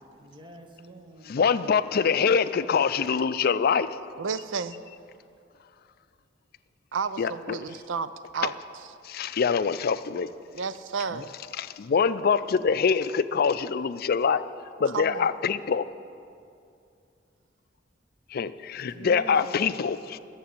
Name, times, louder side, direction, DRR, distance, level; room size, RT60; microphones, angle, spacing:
voice 1, 0.1-1.4 18.7-19.9, right 1 dB, 25° right, 0.9 m, -45 dB
voice 2, 1.3-3.9 7.2-7.6 8.4-8.5 9.0-10.3 11.6-14.4 14.8-15.9 18.3-20.2, left 6 dB, 50° left, 0.4 m, -24 dB
voice 3, 4.2-4.7 6.9-8.5 10.5-11.3 14.9-15.3, right 5 dB, 80° right, 0.5 m, -32 dB
12.5 x 7.6 x 8.5 m
head